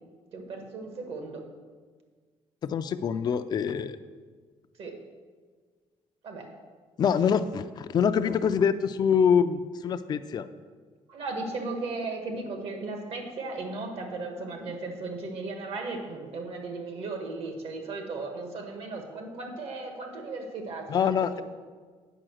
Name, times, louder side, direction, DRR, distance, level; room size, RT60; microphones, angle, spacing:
voice 1, 0.3-1.4 4.8-4.9 6.2-6.5 11.1-21.4, right 3 dB, 65° right, 3 dB, 1.7 m, -36 dB
voice 2, 2.6-4.0 7.0-10.5 20.9-21.4, left 7 dB, 40° left, 10 dB, 0.4 m, -25 dB
8.9 x 5.5 x 6.3 m, 1.5 s
cardioid pair, 125°, 11 cm